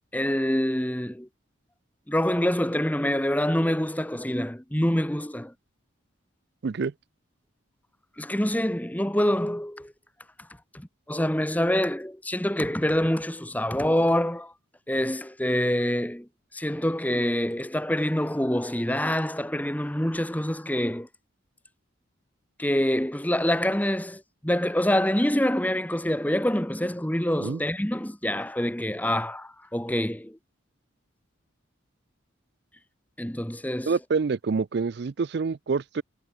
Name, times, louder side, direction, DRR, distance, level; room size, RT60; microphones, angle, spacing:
voice 1, 0.1-1.3 2.1-5.5 8.2-9.9 10.7-14.5 14.9-21.1 22.6-30.4 33.2-33.9, equal, 10° left, 1.3 m, -26 dB
voice 2, 33.9-36.0, right 4 dB, 55° right, 0.4 m, -27 dB
head